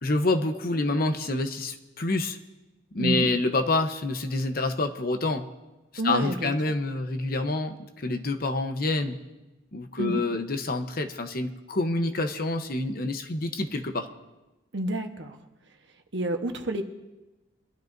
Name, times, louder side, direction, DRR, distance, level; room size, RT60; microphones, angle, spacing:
voice 1, 0.0-2.4 2.9-5.5 6.0-9.2 9.7-14.1, left 2 dB, 50° left, 7 dB, 0.9 m, -27 dB
voice 2, 6.0-6.5 10.0-10.2 14.7-15.4 16.1-16.8, right 1 dB, 65° right, 5 dB, 1.2 m, -29 dB
24.0 x 12.5 x 2.6 m, 1.1 s
head